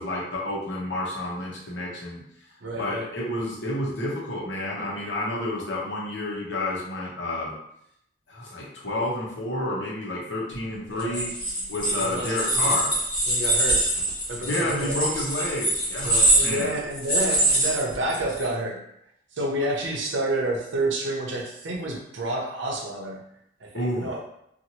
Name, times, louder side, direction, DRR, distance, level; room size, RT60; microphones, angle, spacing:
voice 1, 0.0-2.2 2.7-7.5 8.3-11.3 11.7-12.9 14.5-16.8 23.7-24.1, left 1 dB, 85° left, -4 dB, 0.9 m, -30 dB
voice 2, 2.6-3.1 10.9-11.2 11.6-12.3 12.6-12.9 13.2-13.9 14.3-15.3 16.0-18.8 19.3-23.2 23.6-24.2, right 1 dB, 90° right, -1 dB, 0.7 m, -29 dB
sound 1, 11.0-18.4, right 1 dB, 25° left, 0.9 m, -24 dB
2.8 x 2.5 x 2.8 m, 0.76 s
head